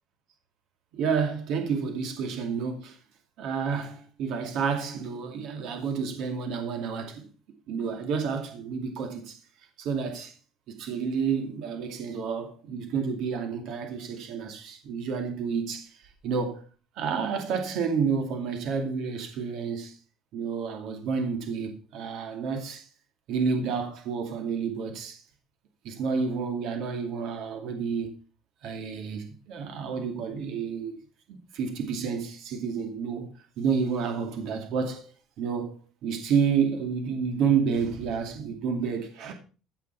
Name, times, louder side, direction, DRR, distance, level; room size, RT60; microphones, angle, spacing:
voice 1, 0.9-3.0 3.4-7.2 7.7-9.4 9.8-10.3 10.7-16.0 16.2-16.6 17.0-20.0 20.3-22.9 23.3-25.2 25.8-28.1 28.6-31.0 31.3-35.1 35.4-35.7 36.0-39.3, right 6 dB, 55° right, 2.4 m, -30 dB
15.5 x 6.0 x 5.7 m
cardioid pair, 170°, 0 cm